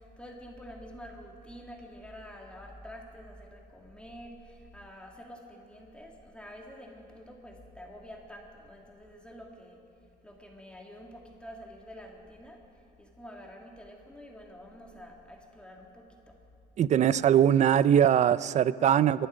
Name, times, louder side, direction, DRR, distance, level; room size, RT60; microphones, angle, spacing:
voice 1, 0.0-9.8 10.2-12.6 13.0-16.3, equal, 5° left, 0 dB, 2.0 m, -48 dB
voice 2, 16.8-19.3, right 9 dB, 45° right, 17 dB, 0.5 m, -22 dB
24.0 x 11.5 x 5.1 m, 2.7 s
cardioid pair, 110°, 17 cm